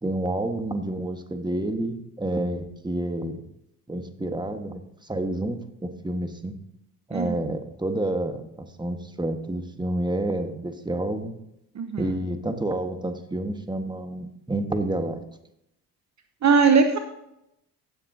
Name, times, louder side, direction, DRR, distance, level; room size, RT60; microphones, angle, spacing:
voice 1, 0.0-3.4 3.9-6.6 7.1-11.3 12.0-15.2, right 1 dB, 10° right, 7 dB, 1.5 m, -29 dB
voice 2, 11.8-12.1 16.4-17.0, right 5 dB, 35° right, 7 dB, 1.0 m, -19 dB
16.0 x 7.8 x 2.8 m, 0.82 s
hypercardioid pair, 55°, 48 cm